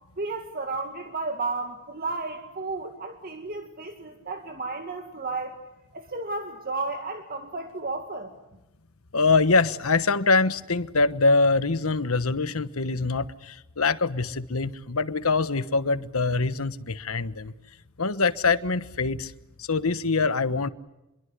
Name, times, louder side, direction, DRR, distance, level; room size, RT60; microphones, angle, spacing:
voice 1, 0.2-5.6 5.9-8.3, right 3 dB, 45° right, 5 dB, 2.2 m, -33 dB
voice 2, 9.1-17.5 18.0-19.3 19.6-20.7, left 3 dB, 85° left, 12 dB, 1.3 m, -24 dB
26.5 x 22.5 x 8.2 m, 0.97 s
head